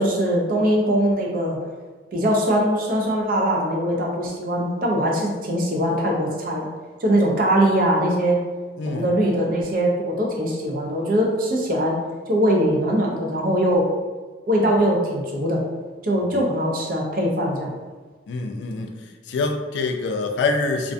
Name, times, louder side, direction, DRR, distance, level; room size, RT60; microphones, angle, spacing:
voice 1, 0.0-1.6 2.1-6.7 7.0-8.4 8.9-12.0 12.3-13.9 14.5-15.6 16.0-17.7, equal, 50° right, -1 dB, 0.5 m, -21 dB
voice 2, 18.3-18.9 19.3-20.9, left 3 dB, 90° left, 4 dB, 0.3 m, -25 dB
2.4 x 2.2 x 2.5 m, 1.4 s
head